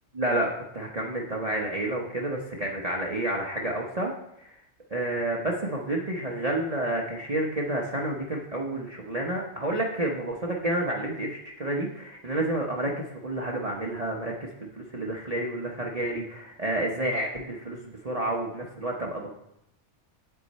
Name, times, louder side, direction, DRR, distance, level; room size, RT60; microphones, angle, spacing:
voice 1, 0.1-4.1 4.4-4.6 4.9-19.3, right 1 dB, 30° right, -2 dB, 0.9 m, -30 dB
8.2 x 8.2 x 4.2 m, 0.80 s
omnidirectional pair, 1.4 m